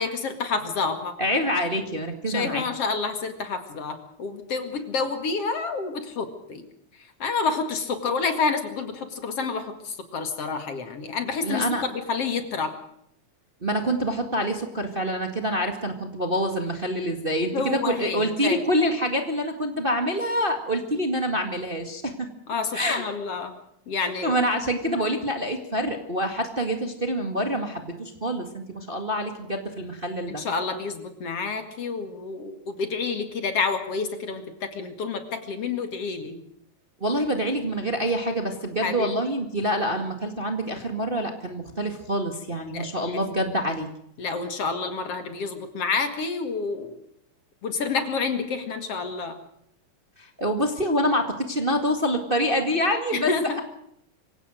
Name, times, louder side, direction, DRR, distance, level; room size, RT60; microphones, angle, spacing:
voice 1, 0.0-1.2 2.3-6.6 7.0-12.7 17.5-18.6 22.5-23.5 23.9-24.4 30.3-36.4 38.8-39.1 42.7-43.2 44.2-47.0 47.6-49.4 53.1-53.6, left 4 dB, 55° left, 8 dB, 2.9 m, -29 dB
voice 2, 1.2-2.6 11.4-11.8 13.6-22.3 22.7-23.0 24.2-30.4 37.0-43.9 50.2-53.3, equal, 20° right, 5 dB, 1.8 m, -26 dB
25.0 x 17.0 x 6.4 m, 0.73 s
omnidirectional pair, 3.3 m